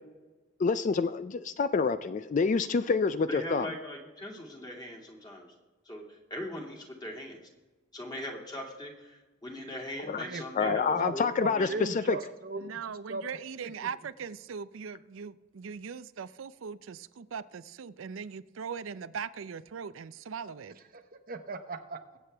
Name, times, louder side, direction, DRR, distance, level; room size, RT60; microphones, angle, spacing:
voice 1, 0.6-3.7 10.1-10.2 10.6-12.2, left 5 dB, 40° left, 0.3 m, -27 dB
voice 2, 3.3-5.5 5.8-7.4 7.9-11.9, left 1 dB, 20° left, 2.3 m, -40 dB
voice 3, 10.2-12.8 13.1-13.2 20.9-21.0 21.3-22.0, right 3 dB, 50° right, 0.9 m, -38 dB
voice 4, 12.6-20.7, right 6 dB, 90° right, 0.5 m, -40 dB
22.5 x 8.3 x 3.4 m
head